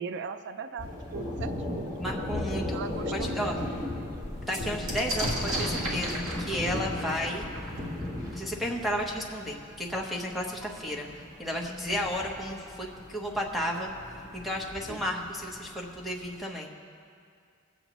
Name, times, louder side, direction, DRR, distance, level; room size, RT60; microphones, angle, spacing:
voice 1, 0.0-2.2 2.7-3.5 14.9-15.1, right 5 dB, 55° right, 9 dB, 0.4 m, -39 dB
Thunder, 0.8-16.3, left 1 dB, 15° right, 1.2 m, -37 dB
voice 2, 2.0-2.8 3.1-3.6 4.5-7.5 8.3-11.1 11.4-13.9 14.3-16.7, equal, ahead, -2 dB, 1.1 m, -33 dB
sound 1, 2.5-2.6 3.0-3.1 3.4-8.9 9.9-10.0 10.2-10.9, right 1 dB, 70° right, 1.8 m, -36 dB
21.5 x 8.0 x 3.0 m, 2.3 s
head